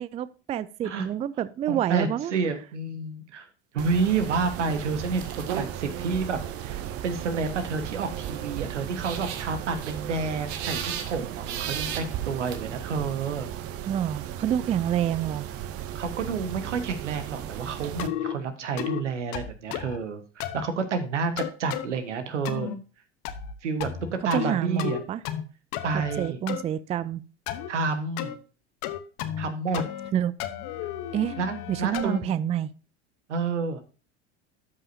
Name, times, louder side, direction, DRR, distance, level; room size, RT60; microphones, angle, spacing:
voice 1, 0.0-2.3 13.9-15.5 24.3-25.2 25.9-27.2 30.1-30.3 31.1-31.4 31.7-32.7, right 10 dB, 20° right, 0.3 m, -28 dB
voice 2, 1.7-3.5 3.7-13.5 15.9-22.7 23.6-23.9 24.2-25.0 25.8-26.4 27.7-28.4 29.4-29.8 31.4-32.3 33.3-33.9, right 4 dB, 80° right, 1.4 m, -29 dB
Mechanisms, 3.8-18.1, right 11 dB, 40° right, 0.8 m, -36 dB
sound 1, 4.1-12.6, right 9 dB, 65° right, 1.3 m, -38 dB
sound 2, 18.0-18.4 18.8-19.0 19.3-20.0 20.4-20.7 21.4-21.9 22.5-22.8 23.3-23.6 23.8-24.5 24.8-25.4 25.7-26.6 27.5-27.7 28.2-28.4 28.8-29.5 29.7-30.1 30.4-32.2, left 11 dB, 55° left, 1.0 m, -33 dB
12.5 x 5.4 x 2.7 m
hypercardioid pair, 80°, 35 cm